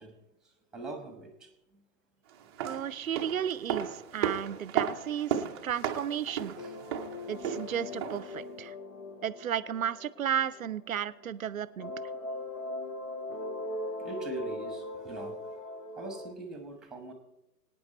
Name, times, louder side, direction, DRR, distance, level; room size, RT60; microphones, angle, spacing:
voice 1, 0.0-1.8 5.6-5.7 6.6-7.3 11.3-11.5 14.0-15.6 16.0-17.1, right 2 dB, ahead, 5 dB, 1.2 m, -43 dB
sound 1, 2.4-8.4 8.7-8.8, right 9 dB, 15° right, 0.6 m, -35 dB
voice 2, 2.6-6.6 7.3-8.7 9.2-11.9, right 9 dB, 60° right, 18 dB, 0.6 m, -33 dB
sound 2, 6.6-11.4 11.8-16.3, left 1 dB, 60° left, 1.6 m, -40 dB
24.5 x 9.2 x 4.2 m, 0.91 s
figure-of-eight pair, 120°, 47 cm